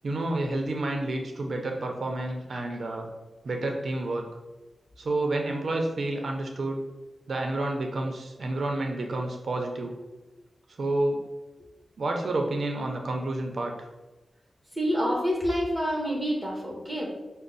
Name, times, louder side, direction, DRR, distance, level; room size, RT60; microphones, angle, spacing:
voice 1, 0.0-3.1 3.4-4.3 5.0-6.8 7.3-10.0 10.8-11.2 12.0-13.9, right 2 dB, 60° right, 2 dB, 0.5 m, -29 dB
voice 2, 14.7-17.1, equal, ahead, -2 dB, 1.2 m, -27 dB
5.9 x 2.0 x 3.9 m, 1.1 s
wide cardioid pair, 125°, 0 cm